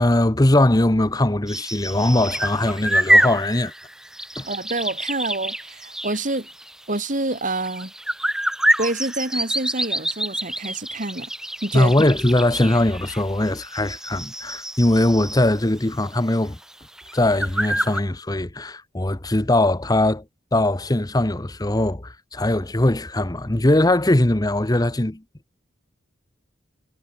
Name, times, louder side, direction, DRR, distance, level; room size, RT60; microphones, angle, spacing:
voice 1, 0.0-3.7 4.4-4.5 11.7-16.6 17.1-20.2 20.5-25.2, left 1 dB, 20° left, 1.0 m, -20 dB
sound 1, 1.5-15.8 16.1-16.2 16.6-16.7 17.0-18.0, right 1 dB, 5° right, 0.5 m, -26 dB
voice 2, 4.5-6.5 6.9-7.9 8.8-11.3 11.6-11.9, right 2 dB, 40° right, 4.7 m, -27 dB
head